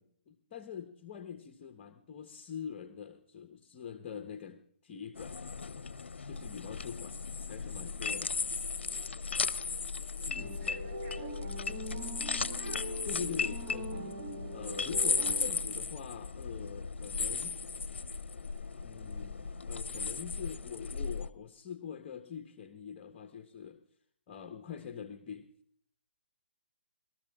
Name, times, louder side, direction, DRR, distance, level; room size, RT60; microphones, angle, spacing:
voice 1, 0.3-5.4 6.2-7.2 7.5-8.4 10.3-10.7 13.0-14.2 14.5-17.6 18.8-23.8 24.3-25.5, left 7 dB, 30° left, 7 dB, 1.1 m, -44 dB
sound 1, 5.2-21.3, left 4 dB, 80° left, 0.7 m, -36 dB
voice 2, 9.4-10.0 10.6-12.4 15.1-15.3, right 2 dB, 55° right, 2 dB, 5.5 m, -57 dB
sound 2, 10.4-15.8, right 1 dB, 30° right, 1.6 m, -42 dB
20.0 x 13.0 x 3.7 m, 0.63 s
hypercardioid pair, 145°, 6 cm